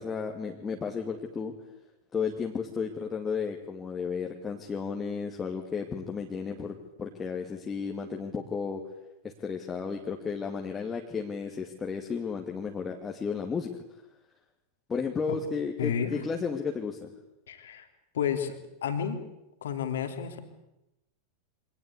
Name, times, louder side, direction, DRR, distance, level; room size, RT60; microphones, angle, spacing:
voice 1, 0.0-1.5 2.1-8.8 9.4-13.7 14.9-17.1, left 5 dB, 20° left, 1 dB, 2.4 m, -33 dB
voice 2, 15.8-16.1 17.5-17.9 18.1-18.6 18.8-19.2 19.6-20.4, left 8 dB, 60° left, 7 dB, 3.1 m, -30 dB
25.0 x 19.0 x 8.5 m, 0.92 s
figure-of-eight pair, 90°, 0 cm